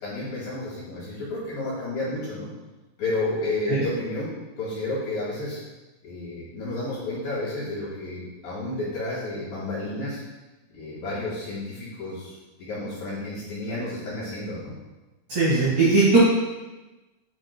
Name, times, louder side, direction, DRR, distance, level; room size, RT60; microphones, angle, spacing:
voice 1, 0.0-2.5 3.0-4.3 4.6-5.6 6.0-10.2 10.7-14.7, left 2 dB, 55° left, -9 dB, 3.2 m, -31 dB
voice 2, 15.3-16.2, right 3 dB, 55° right, -6 dB, 2.4 m, -19 dB
10.0 x 6.0 x 2.2 m, 1.1 s
omnidirectional pair, 5.9 m